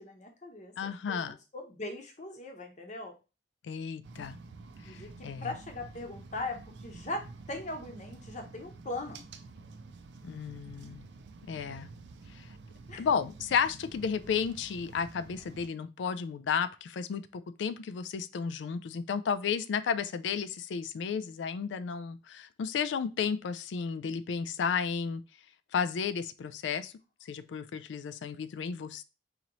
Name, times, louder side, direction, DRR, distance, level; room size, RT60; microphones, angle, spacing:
voice 1, 0.0-3.2 4.8-9.2 12.9-13.1, left 2 dB, 40° left, 0.9 m, -40 dB
voice 2, 0.8-1.4 3.6-4.4 4.8-5.5 10.2-11.0 11.5-11.9 12.3-12.5 13.0-25.2 25.7-26.9 27.2-29.0, left 6 dB, 80° left, 0.3 m, -33 dB
sound 1, 4.0-15.7, right 3 dB, 70° right, 0.4 m, -49 dB
3.9 x 2.9 x 3.0 m
head